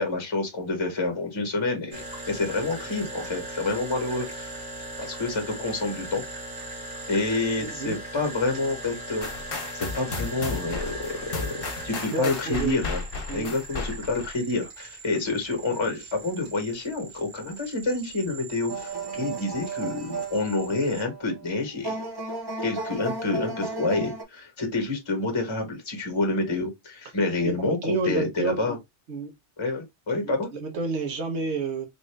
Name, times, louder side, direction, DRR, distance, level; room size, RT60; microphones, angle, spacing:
voice 1, 0.0-4.5 5.0-6.2 7.1-9.3 9.7-13.0 13.3-22.0 22.6-28.8 29.6-30.5, left 3 dB, 25° left, 1.1 m, -28 dB
sound 1, 1.9-21.0, right 2 dB, 45° right, 1.6 m, -40 dB
voice 2, 7.6-8.0 12.1-12.8 13.3-13.5 27.4-28.8 29.1-29.3 30.2-31.9, right 3 dB, 75° right, 1.1 m, -30 dB
sound 2, 9.2-14.3, left 4 dB, 55° left, 1.0 m, -34 dB
sound 3, 18.7-24.2, right 3 dB, 25° right, 0.6 m, -34 dB
3.5 x 2.6 x 3.2 m
omnidirectional pair, 1.2 m